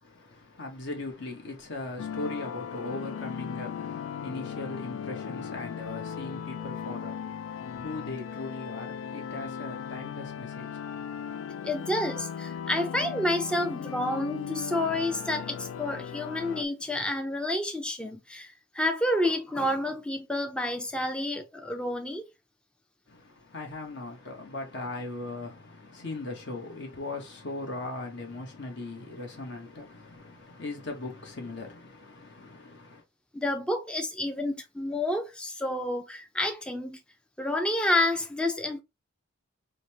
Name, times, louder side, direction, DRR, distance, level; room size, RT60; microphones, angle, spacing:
voice 1, 0.0-11.3 23.1-33.0, left 2 dB, 55° left, 1.0 m, -39 dB
sound 1, 2.0-16.6, left 7 dB, 75° left, 0.3 m, -37 dB
voice 2, 11.6-22.3 33.3-37.0 37.4-38.8, left 1 dB, 5° left, 0.4 m, -29 dB
5.1 x 2.1 x 2.8 m
head